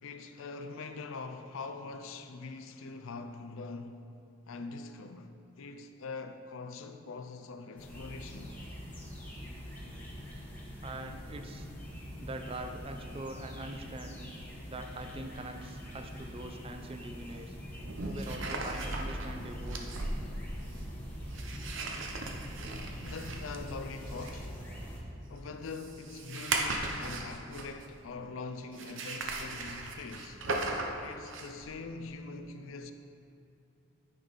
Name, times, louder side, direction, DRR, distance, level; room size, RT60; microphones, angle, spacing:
voice 1, 0.0-4.1 4.5-8.6 23.0-24.6 25.3-30.5 31.0-32.9, left 4 dB, 70° left, 0.5 m, -43 dB
sound 1, 7.8-25.0, equal, 10° left, 1.2 m, -44 dB
voice 2, 10.8-11.7 12.2-14.2 14.7-17.6 18.0-19.9, right 2 dB, 25° right, 0.4 m, -43 dB
sound 2, 16.1-16.2 17.6-28.0 28.7-31.7, right 2 dB, 65° right, 0.7 m, -38 dB
9.7 x 5.3 x 4.1 m
head